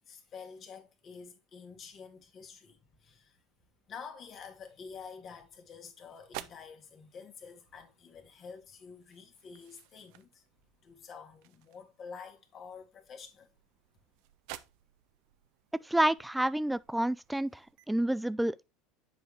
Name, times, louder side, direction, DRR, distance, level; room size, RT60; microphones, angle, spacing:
voice 1, 0.1-3.4 3.9-10.4 10.8-13.5, left 6 dB, 40° left, 1.8 m, -48 dB
sound 1, 5.3-17.8, right 14 dB, 65° right, 0.6 m, -53 dB
voice 2, 15.8-18.6, right 1 dB, 5° right, 0.3 m, -29 dB
7.7 x 4.9 x 3.6 m
hypercardioid pair, 90°, 0 cm